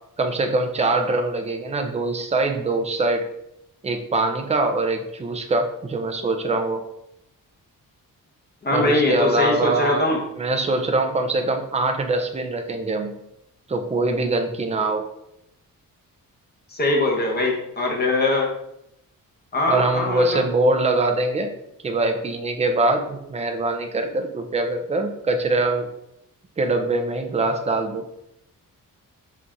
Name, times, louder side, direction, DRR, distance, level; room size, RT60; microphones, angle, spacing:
voice 1, 0.2-3.2 3.8-6.8 8.7-13.1 13.7-15.1 19.7-21.5 21.8-25.9 26.6-28.0, right 2 dB, 20° right, 5 dB, 0.4 m, -23 dB
voice 2, 8.6-10.2 16.7-18.5 19.5-20.4, left 2 dB, 30° left, -1 dB, 0.9 m, -22 dB
4.0 x 2.4 x 4.4 m, 0.81 s
wide cardioid pair, 160°, 35 cm